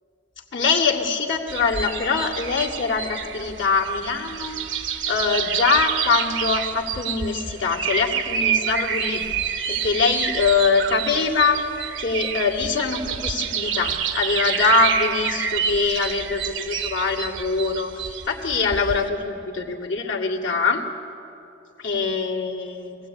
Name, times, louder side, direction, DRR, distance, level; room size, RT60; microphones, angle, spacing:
voice 1, 0.5-11.6 12.0-20.8 21.8-23.0, left 4 dB, 85° left, -2 dB, 2.3 m, -23 dB
sound 1, 1.5-19.1, right 7 dB, 85° right, 1.1 m, -28 dB
23.5 x 16.5 x 8.7 m, 2.9 s
head